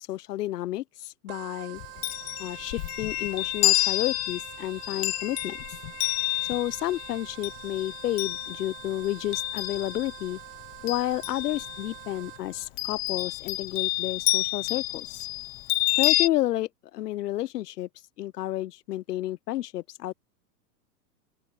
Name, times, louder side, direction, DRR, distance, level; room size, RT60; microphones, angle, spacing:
voice 1, 0.0-1.8 2.4-5.6 6.4-10.4 10.8-15.3 16.0-17.9 18.2-20.1, left 14 dB, 65° left, 1.0 m, -31 dB
sound 1, 1.3-12.7, right 22 dB, 30° right, 3.9 m, -45 dB
Chime, 1.8-10.3 10.6-12.0 12.8-16.3, left 24 dB, 40° left, 1.0 m, -29 dB
open air
hypercardioid pair, 145°, 50 cm